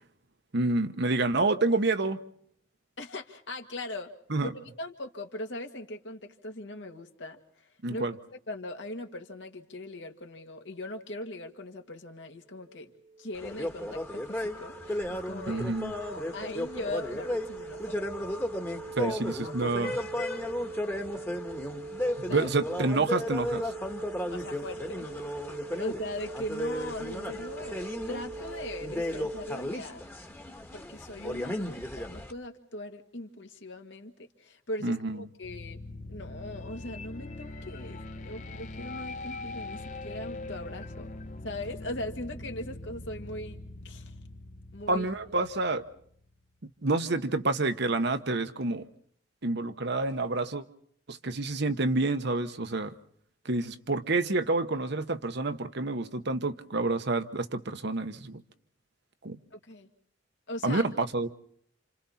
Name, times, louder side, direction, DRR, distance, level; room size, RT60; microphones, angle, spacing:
voice 1, 0.5-2.2 4.3-4.5 7.8-8.1 15.5-15.9 19.0-20.0 22.3-23.6 34.8-35.2 44.9-45.8 46.8-48.9 49.4-50.6 51.1-52.9 53.4-58.4 59.2-59.4 60.6-61.3, right 2 dB, 60° right, 9 dB, 1.1 m, -28 dB
voice 2, 3.0-4.1 4.4-4.5 4.8-12.9 13.2-15.7 16.0-18.0 19.0-19.2 19.4-20.1 22.3-22.5 24.3-25.1 25.8-30.0 30.7-34.1 34.4-35.8 36.1-41.1 41.4-43.6 43.8-44.1 44.7-45.1 59.5-59.9 60.5-60.8, left 1 dB, 65° left, 4 dB, 2.0 m, -40 dB
sound 1, 12.5-29.5, right 3 dB, 35° right, 1.2 m, -43 dB
sound 2, 13.4-32.3, left 1 dB, 10° left, 1.4 m, -35 dB
sound 3, 35.4-46.3, left 2 dB, 40° left, 1.0 m, -42 dB
29.0 x 27.5 x 4.3 m, 0.65 s
head